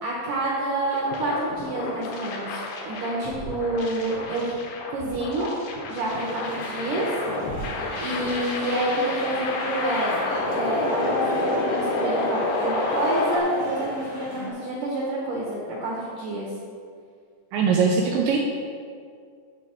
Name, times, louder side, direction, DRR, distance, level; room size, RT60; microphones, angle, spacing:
voice 1, 0.0-4.5 4.9-5.5 5.9-7.0 8.0-10.2 10.5-16.5, right 1 dB, 65° right, -4 dB, 2.1 m, -28 dB
sound 1, 0.9-13.4, left 2 dB, 75° left, 3.4 m, -30 dB
sound 2, 6.1-14.5, left 1 dB, 35° left, 1.2 m, -35 dB
voice 2, 17.5-18.4, right 5 dB, 85° right, 0 dB, 2.3 m, -21 dB
11.0 x 7.3 x 4.6 m, 2.2 s
omnidirectional pair, 5.5 m